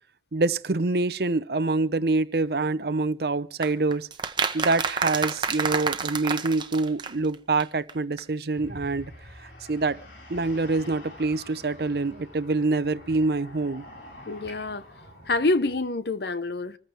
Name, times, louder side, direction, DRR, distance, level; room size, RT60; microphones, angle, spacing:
voice 1, 0.3-4.1 4.5-9.1 9.4-10.0 10.3-13.8, right 3 dB, 60° right, 0.7 m, -26 dB
sound 1, 3.6-7.3 7.6-7.7 7.9-8.0 8.2-8.3, right 5 dB, 25° right, 1.0 m, -29 dB
sound 2, 8.6-15.8, left 1 dB, 90° left, 4.8 m, -46 dB
voice 2, 14.3-14.8 15.3-16.8, left 2 dB, 70° left, 1.0 m, -26 dB
25.5 x 15.0 x 3.4 m
head